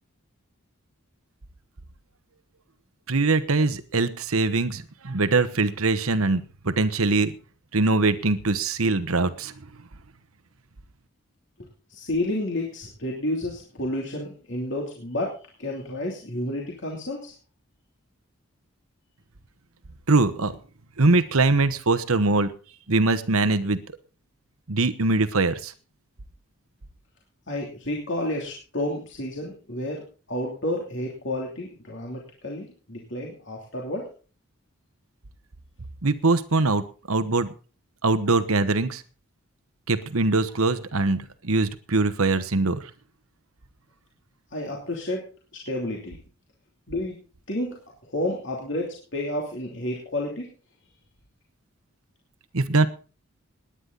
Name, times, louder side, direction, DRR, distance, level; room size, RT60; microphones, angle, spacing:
voice 1, 3.1-7.3 7.7-9.5 20.1-20.6 21.0-22.5 22.9-23.8 24.7-25.7 36.0-37.5 38.0-39.0 39.9-42.9 52.5-52.9, right 3 dB, 80° right, 13 dB, 1.1 m, -22 dB
voice 2, 11.6-17.3 27.5-34.1 44.5-46.2 46.9-47.2 47.5-50.5, left 1 dB, 55° left, -1 dB, 3.0 m, -31 dB
19.5 x 10.0 x 4.0 m, 0.36 s
head